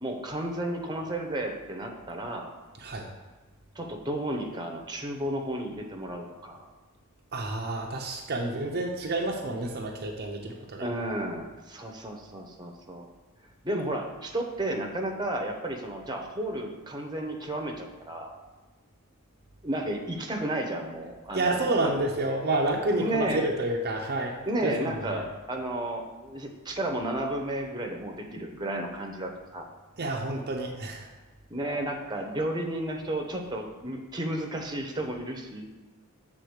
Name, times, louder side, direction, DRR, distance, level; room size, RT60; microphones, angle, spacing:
voice 1, 0.0-2.5 3.7-6.7 10.8-13.1 13.6-18.3 19.6-21.9 23.0-23.4 24.5-29.7 31.5-35.6, right 1 dB, 20° right, 2 dB, 0.9 m, -32 dB
voice 2, 7.3-10.9 21.3-25.2 30.0-31.1, right 2 dB, 45° right, 0 dB, 0.7 m, -29 dB
7.8 x 3.8 x 6.5 m, 1.2 s
head